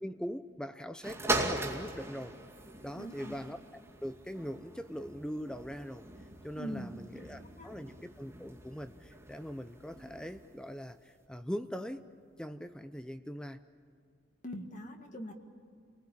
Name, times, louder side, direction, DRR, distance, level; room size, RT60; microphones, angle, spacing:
voice 1, 0.0-2.3 2.8-3.6 4.0-6.0 6.4-12.0 12.4-13.6, equal, 5° left, 10 dB, 0.6 m, -41 dB
sound 1, 1.0-10.6 11.2-11.3, right 2 dB, 15° right, 2.4 m, -40 dB
voice 2, 2.9-3.4 6.6-7.7 14.4-15.3, equal, 40° left, 4 dB, 1.9 m, -43 dB
30.0 x 20.0 x 8.7 m, 2.3 s
head